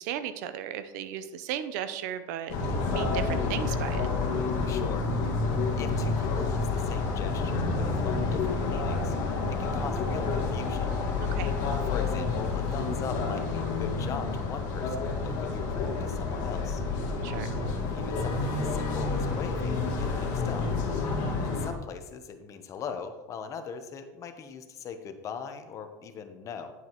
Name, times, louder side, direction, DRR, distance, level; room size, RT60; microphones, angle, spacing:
voice 1, 0.0-2.6 2.9-4.1 11.2-11.5 17.2-17.5, right 10 dB, 70° right, 12 dB, 0.7 m, -35 dB
sound 1, 2.5-21.7, left 4 dB, 50° left, 1.9 m, -29 dB
voice 2, 4.6-5.1 5.8-10.9 11.8-16.8 17.9-20.7 21.4-26.7, left 6 dB, 35° left, 7 dB, 0.8 m, -41 dB
9.6 x 8.2 x 3.0 m, 1.2 s
supercardioid pair, 135°, 10 cm